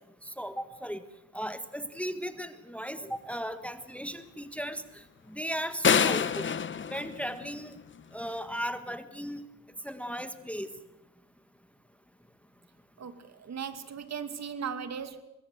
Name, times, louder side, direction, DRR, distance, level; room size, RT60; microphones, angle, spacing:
voice 1, 0.2-1.0 1.3-6.5 6.9-7.8 8.1-9.4 9.8-10.7, equal, 5° left, 10 dB, 1.5 m, -36 dB
sound 1, 5.8-8.0, left 7 dB, 30° left, 1.1 m, -27 dB
voice 2, 13.0-15.2, right 7 dB, 40° right, 10 dB, 2.6 m, -37 dB
24.5 x 20.5 x 8.0 m, 0.95 s
supercardioid pair, 90°, 41 cm